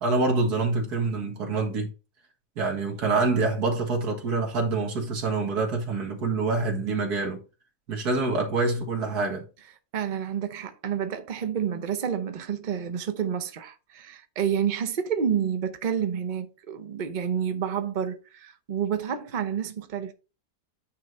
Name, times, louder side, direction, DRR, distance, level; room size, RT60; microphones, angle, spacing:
voice 1, 0.0-1.9 2.6-7.4 7.9-9.5, right 3 dB, 75° right, 2.3 m, -26 dB
voice 2, 9.9-20.1, right 8 dB, 40° right, 0.7 m, -29 dB
9.5 x 3.2 x 5.4 m
omnidirectional pair, 1.7 m